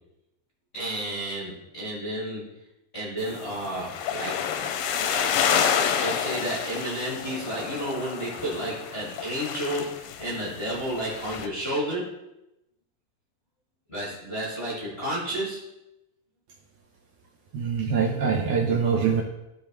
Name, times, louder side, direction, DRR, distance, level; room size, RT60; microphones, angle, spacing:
voice 1, 0.7-2.5 2.9-4.4 5.1-5.3 6.0-12.1 13.9-15.6, right 1 dB, 25° left, -8 dB, 1.4 m, -31 dB
sound 1, 3.2-11.5, left 8 dB, 85° left, 2.3 m, -29 dB
voice 2, 17.5-19.2, right 6 dB, 70° right, -1 dB, 1.9 m, -24 dB
13.5 x 5.2 x 3.1 m, 0.91 s
omnidirectional pair, 4.1 m